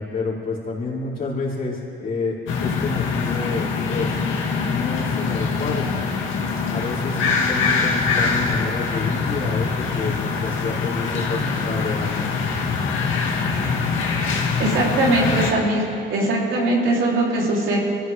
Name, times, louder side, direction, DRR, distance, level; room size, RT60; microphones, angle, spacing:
voice 1, 0.0-2.4 2.6-4.1 4.6-5.9 6.7-12.3, left 3 dB, 45° left, -7 dB, 5.0 m, -29 dB
sound 1, 2.5-15.5, left 5 dB, 85° left, 2.1 m, -23 dB
voice 2, 14.6-15.8 16.1-17.8, right 2 dB, 80° right, -4 dB, 3.7 m, -20 dB
24.0 x 16.0 x 3.7 m, 2.6 s
cardioid pair, 90°, 20 cm